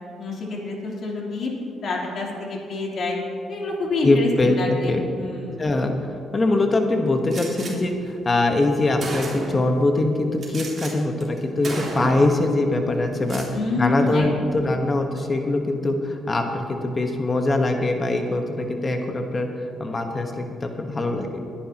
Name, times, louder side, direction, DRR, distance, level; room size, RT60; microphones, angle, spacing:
voice 1, 0.2-1.5 1.8-3.2 3.5-5.6 13.5-14.3, left 3 dB, 60° left, -3 dB, 3.3 m, -27 dB
voice 2, 4.0-5.0 5.6-5.9 6.3-13.4 13.8-19.5 19.8-21.4, left 2 dB, 30° left, 4 dB, 1.2 m, -22 dB
Gunshot gunfire, 7.3-7.7 8.6-8.7 9.0-9.7 10.4-10.9 11.2-11.4 11.6-12.3 13.1-13.5, right 2 dB, 45° right, 3.6 m, -32 dB
22.0 x 10.0 x 2.9 m, 2.5 s
cardioid pair, 90°, 0 cm